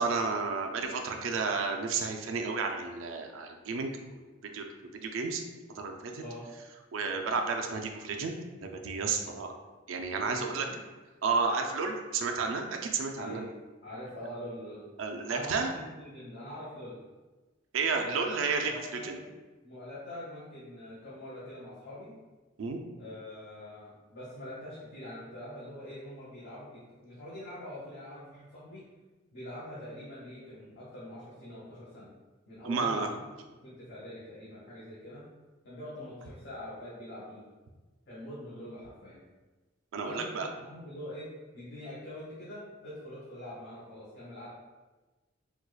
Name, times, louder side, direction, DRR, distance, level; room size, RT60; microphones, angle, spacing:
voice 1, 0.0-4.7 4.9-5.4 5.8-6.2 6.9-8.4 8.6-9.5 9.9-10.7 11.2-13.4 15.0-15.7 17.7-18.7 19.0-19.2 22.6-22.8 32.6-33.1 39.9-40.5, right 4 dB, 90° right, 3 dB, 0.4 m, -31 dB
voice 2, 10.2-10.8 13.2-13.5 13.8-14.9 15.3-17.0 18.0-18.4 18.6-19.3 19.6-22.1 22.9-28.9 29.3-32.1 32.5-33.4 33.6-35.2 35.6-37.4 38.1-39.2 40.0-41.3 41.5-44.5, left 1 dB, 60° left, -10 dB, 1.1 m, -44 dB
4.4 x 2.3 x 2.3 m, 1.2 s
head